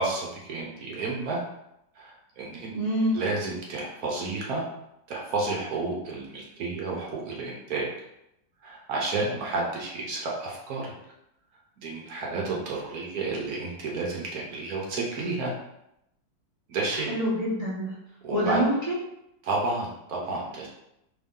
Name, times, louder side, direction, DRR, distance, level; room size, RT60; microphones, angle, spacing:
voice 1, 0.0-1.4 2.0-2.7 3.1-4.6 5.1-7.9 8.6-10.9 11.8-15.5 16.7-17.1 18.2-18.6 19.4-20.7, right 3 dB, 65° right, -3 dB, 1.1 m, -31 dB
voice 2, 2.7-3.2 16.9-18.0 18.3-18.9, equal, 90° right, -7 dB, 0.3 m, -26 dB
3.5 x 2.7 x 3.6 m, 0.83 s
omnidirectional pair, 2.0 m